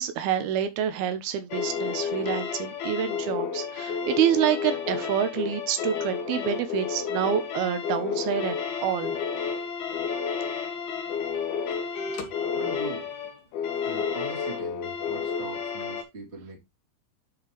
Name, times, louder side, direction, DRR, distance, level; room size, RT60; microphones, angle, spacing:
voice 1, 0.0-8.6 8.8-9.2, right 9 dB, 80° right, 2.8 m, -27 dB
sound 1, 1.5-16.0, left 6 dB, 80° left, 3.5 m, -31 dB
voice 2, 12.5-13.1 13.8-16.6, right 3 dB, 20° right, 2.5 m, -40 dB
10.5 x 5.1 x 3.2 m
omnidirectional pair, 4.4 m